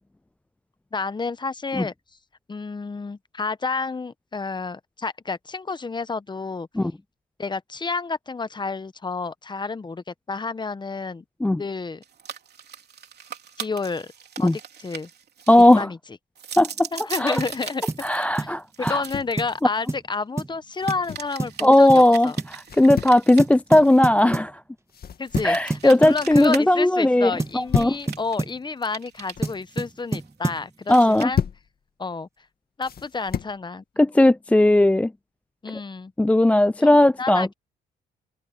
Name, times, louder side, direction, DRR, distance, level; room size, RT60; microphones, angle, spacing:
voice 1, 0.9-1.9 2.5-6.7 7.4-11.2 11.6-12.0 13.6-14.1 14.4-14.5 14.8-15.1 15.8-16.0 16.9-17.8 18.1-18.5 18.8-22.4 25.2-31.4 32.0-32.3 32.8-33.8 35.6-36.1 36.8-37.5, left 4 dB, 20° left, 0.9 m, -30 dB
sound 1, 12.0-15.8 16.4-19.9 20.8-24.2 25.3-26.6 26.9-27.0 27.8-28.5 28.8-30.6 30.9-31.2, right 8 dB, 55° right, 3.3 m, -40 dB
voice 2, 15.5-15.9 16.6-16.9 17.2-17.4 18.0-19.0 21.6-24.5 25.4-27.9 30.9-31.3 34.0-35.1 36.2-37.5, left 1 dB, 5° left, 0.3 m, -17 dB
sound 2, 17.4-17.6 17.9-18.1 18.4-18.6 18.9-19.0 19.4-19.6 19.9-20.1 20.4-20.6 20.9-21.1 21.4-21.6 21.9-22.1 22.4-22.6 22.9-23.1 23.4-24.5 25.4-26.6 27.4-28.6 29.4-30.7, right 2 dB, 15° right, 1.4 m, -28 dB
sound 3, 18.8-19.4 20.7-21.4 22.6-23.2 24.9-25.7 26.1-26.5 27.4-28.1 29.1-29.6 30.9-31.7 32.8-33.6, left 8 dB, 50° left, 2.1 m, -31 dB
cardioid pair, 90°, 20 cm